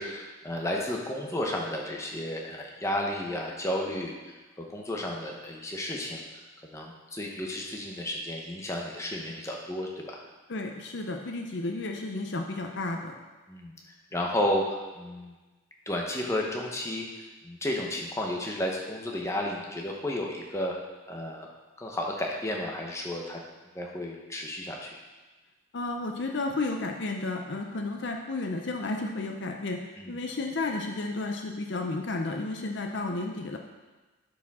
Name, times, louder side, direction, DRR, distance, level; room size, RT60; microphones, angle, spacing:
voice 1, 0.0-6.2 6.6-10.2 13.5-13.7 14.1-15.3 15.9-17.1 17.4-20.8 21.1-21.5 21.8-23.4 23.7-24.9 30.0-30.2, left 1 dB, 15° left, -1 dB, 0.9 m, -32 dB
voice 2, 10.5-13.1 25.7-29.8 30.1-33.6, left 2 dB, 55° left, 3 dB, 0.6 m, -32 dB
11.5 x 4.9 x 3.6 m, 1.2 s
head